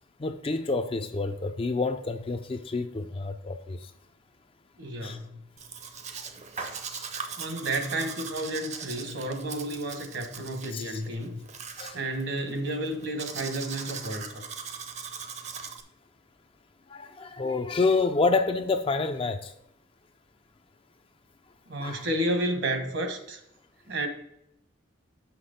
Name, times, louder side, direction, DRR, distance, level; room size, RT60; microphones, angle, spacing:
voice 1, 0.2-3.8 5.0-5.2 6.6-7.1 10.7-11.0 11.8-12.0 16.9-19.5 21.8-22.1, left 3 dB, 25° left, 0.4 m, -28 dB
voice 2, 4.8-5.4 7.4-11.4 11.9-14.4 21.7-23.4 23.9-24.1, right 1 dB, 65° right, 1.1 m, -31 dB
Domestic sounds home sounds, 5.6-15.8, right 6 dB, 35° right, 0.6 m, -40 dB
6.3 x 5.9 x 5.1 m
head